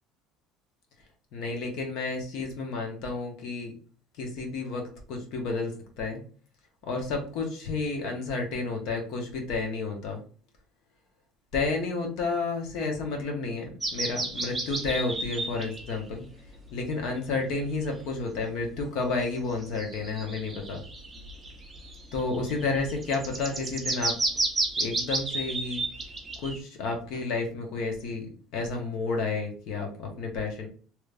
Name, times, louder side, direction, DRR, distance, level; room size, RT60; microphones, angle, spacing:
voice 1, 1.3-3.7 4.2-4.8 5.1-5.7 6.0-6.2 6.9-10.2 11.5-16.2 16.7-20.8 22.1-24.1 24.8-25.8 26.4-30.7, left 3 dB, 55° left, 3 dB, 1.0 m, -31 dB
sound 1, 13.8-16.0 16.5-16.7 17.6-17.7 19.6-26.6, right 2 dB, 10° right, 0.6 m, -32 dB
3.4 x 3.1 x 2.5 m, 0.42 s
cardioid pair, 170°, 0 cm